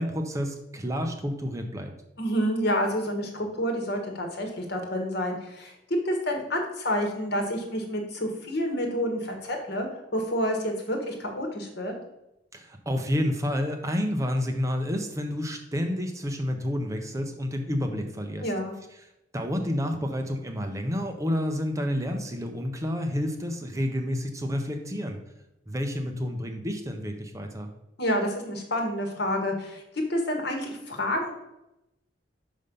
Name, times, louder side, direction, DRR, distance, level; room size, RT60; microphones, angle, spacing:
voice 1, 0.0-1.9 12.5-18.5 19.3-25.2 25.7-27.7, equal, 20° right, 5 dB, 0.6 m, -29 dB
voice 2, 2.2-5.7 6.0-9.9 10.1-11.9 18.4-18.7 28.0-29.8 30.1-31.3, equal, 60° left, 3 dB, 1.5 m, -28 dB
5.5 x 5.1 x 5.3 m, 0.88 s
head